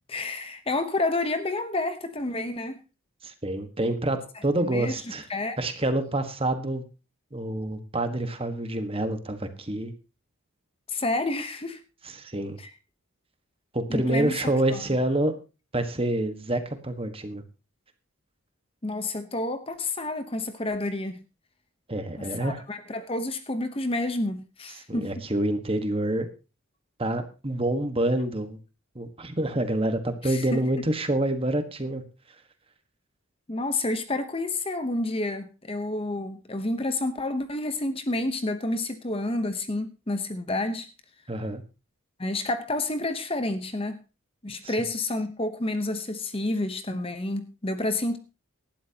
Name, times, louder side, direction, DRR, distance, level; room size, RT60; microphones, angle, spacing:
voice 1, 0.1-2.8 4.6-4.9 5.3-5.6 10.9-11.8 12.6-12.7 13.9-14.8 18.8-21.2 22.2-25.1 30.2-30.6 33.5-40.9 42.2-44.0 44.4-48.2, left 2 dB, 25° left, 0.9 m, -29 dB
voice 2, 3.2-5.3 5.6-6.8 7.3-9.9 12.0-12.6 13.7-15.3 15.7-17.4 21.9-22.6 24.9-26.3 27.0-28.6 28.9-32.0 41.3-41.6 44.6-44.7, right 1 dB, 25° right, 1.4 m, -27 dB
18.0 x 12.0 x 2.9 m
head